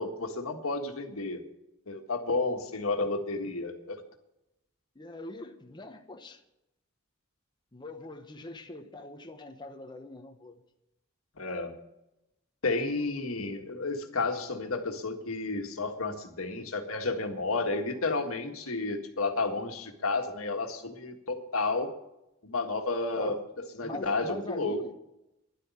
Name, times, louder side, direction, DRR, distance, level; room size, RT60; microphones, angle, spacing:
voice 1, 0.0-1.4 1.9-4.0 11.4-11.7 12.6-21.9 22.4-24.8, left 3 dB, 85° left, 1.7 m, -31 dB
voice 2, 5.0-6.4 7.7-10.6 23.2-23.4 23.8-24.9, left 2 dB, 20° left, 1.0 m, -42 dB
11.0 x 8.3 x 9.8 m
head